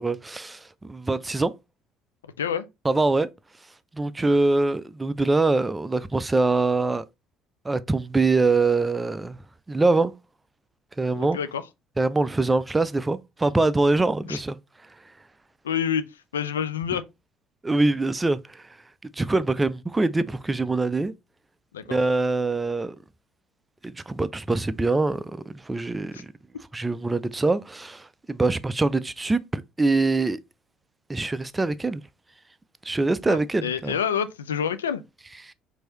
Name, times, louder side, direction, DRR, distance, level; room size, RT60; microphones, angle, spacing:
voice 1, 0.0-1.5 2.8-3.3 3.9-7.0 7.6-9.4 9.7-10.1 11.0-11.4 12.0-14.6 17.6-18.6 19.0-21.1 21.9-23.0 23.8-26.3 26.7-30.4 31.1-32.0 32.8-34.0 35.5-35.6, right 3 dB, 15° right, 0.4 m, -24 dB
voice 2, 11.1-11.6 14.3-14.4 15.6-16.0 16.3-17.0 21.7-22.0 26.1-26.2 33.3-35.0, left 8 dB, 85° left, 0.3 m, -27 dB
4.6 x 2.7 x 2.9 m
figure-of-eight pair, 55°, 0 cm